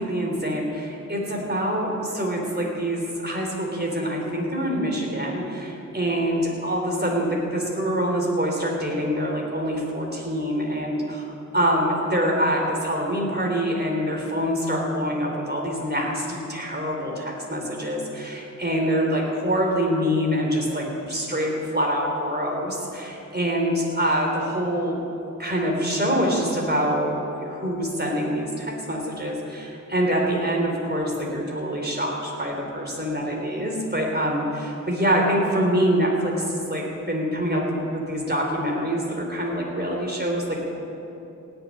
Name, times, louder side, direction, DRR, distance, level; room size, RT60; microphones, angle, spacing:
voice 1, 0.0-40.7, equal, 30° right, 0 dB, 3.8 m, -25 dB
16.5 x 7.0 x 9.9 m, 2.9 s
cardioid pair, 45°, 32 cm